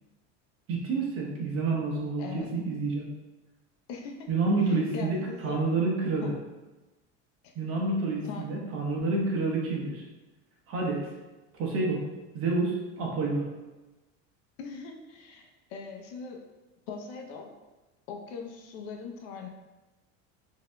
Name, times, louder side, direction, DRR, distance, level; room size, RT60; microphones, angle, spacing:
voice 1, 0.7-3.1 4.3-6.3 7.5-10.0 10.7-11.0 11.5-12.0 12.3-13.5, right 3 dB, 45° right, -2 dB, 1.0 m, -28 dB
voice 2, 2.2-2.5 3.9-4.3 4.7-5.9 6.2-6.4 7.4-7.5 8.2-8.5 14.6-16.4 16.9-17.5 18.1-19.5, left 5 dB, 75° left, 2 dB, 0.7 m, -41 dB
5.8 x 2.8 x 2.2 m, 1.1 s
cardioid pair, 160°, 33 cm